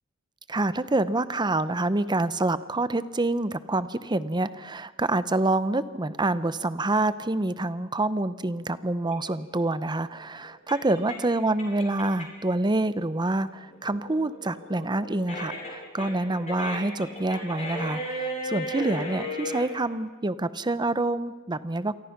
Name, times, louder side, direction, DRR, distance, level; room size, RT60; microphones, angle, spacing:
voice 1, 0.5-22.0, right 2 dB, 20° right, 14 dB, 0.8 m, -27 dB
sound 1, 9.1-12.5 12.9-19.6, left 1 dB, 35° left, 7.0 m, -35 dB
28.5 x 23.5 x 6.0 m, 1.4 s
head